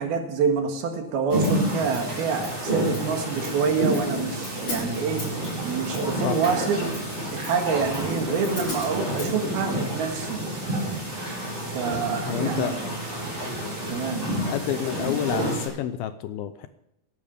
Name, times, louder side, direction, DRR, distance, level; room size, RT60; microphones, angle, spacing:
voice 1, 0.0-5.3 5.6-6.8 7.3-10.4 11.7-12.8 13.9-14.3, right 5 dB, 70° right, 4 dB, 3.6 m, -27 dB
sound 1, 1.3-15.7, right 1 dB, 10° right, 5.2 m, -29 dB
Hi-hat, 1.4-9.3, left 2 dB, 30° left, 6.3 m, -41 dB
voice 2, 12.3-12.8 14.3-16.8, left 10 dB, 80° left, 11 dB, 2.3 m, -29 dB
17.5 x 12.0 x 3.6 m, 0.84 s
omnidirectional pair, 4.7 m